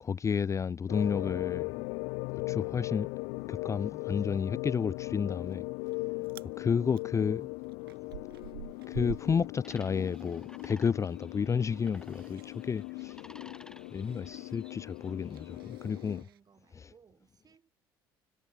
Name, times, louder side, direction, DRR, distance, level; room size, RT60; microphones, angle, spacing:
voice 1, 0.0-1.9 2.5-3.1 3.5-5.7 6.6-7.5 8.9-13.2 13.9-15.6 15.8-16.2 16.8-16.9, left 6 dB, 25° left, 0.5 m, -31 dB
sound 1, 0.9-16.2, left 32 dB, 60° left, 0.7 m, -39 dB
Chewing mastication, 5.5-6.0 6.2-6.5 6.9-10.7 11.0-16.4, right 13 dB, 75° right, 0.4 m, -48 dB
sound 2, 9.6-15.7, left 1 dB, 5° left, 6.0 m, -56 dB
voice 2, 13.6-14.4 15.6-17.7, right 6 dB, 35° right, 4.9 m, -64 dB
figure-of-eight pair, 55°, 12 cm